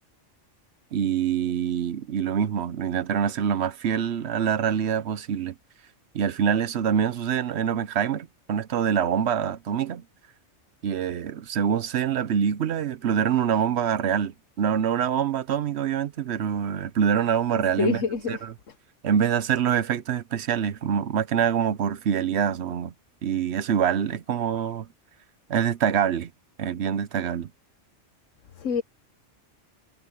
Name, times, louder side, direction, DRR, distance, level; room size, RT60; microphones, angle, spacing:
voice 1, 0.9-5.5 6.1-10.0 10.8-18.0 18.3-18.5 19.0-22.9 23.2-24.9 25.5-26.3 26.6-27.5, right 8 dB, 60° right, 1.0 m, -25 dB
voice 2, 17.8-18.5 28.6-28.8, left 5 dB, 75° left, 1.5 m, -26 dB
omnidirectional pair, 1.3 m